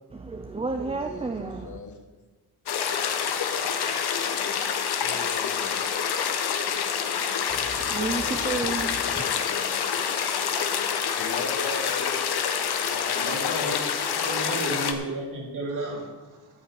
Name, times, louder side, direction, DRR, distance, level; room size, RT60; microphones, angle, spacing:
voice 1, 0.1-1.8 7.5-9.3, right 3 dB, 15° right, 5 dB, 0.5 m, -31 dB
voice 2, 1.0-2.0 5.0-5.8 8.8-10.2 11.1-12.2 12.8-13.8 14.1-14.8, left 3 dB, 50° left, 4 dB, 1.6 m, -38 dB
sound 1, 2.7-14.9, left 7 dB, 85° left, 1.3 m, -27 dB
voice 3, 3.2-4.1 11.1-11.2 13.1-13.8 14.1-16.4, right 2 dB, 55° right, -1 dB, 2.8 m, -35 dB
13.5 x 5.6 x 8.7 m, 1.3 s
wide cardioid pair, 180°, 38 cm